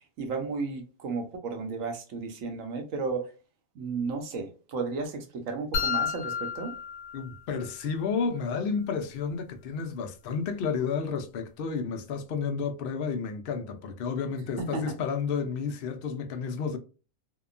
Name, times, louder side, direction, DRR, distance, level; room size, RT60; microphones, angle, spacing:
voice 1, 0.2-3.3 3.7-6.7 14.7-14.9, right 4 dB, 75° right, 1.1 m, -33 dB
sound 1, 5.7-7.8, left 6 dB, 80° left, 1.0 m, -31 dB
voice 2, 7.1-16.8, left 5 dB, 65° left, 0.6 m, -31 dB
2.8 x 2.1 x 2.4 m
omnidirectional pair, 1.4 m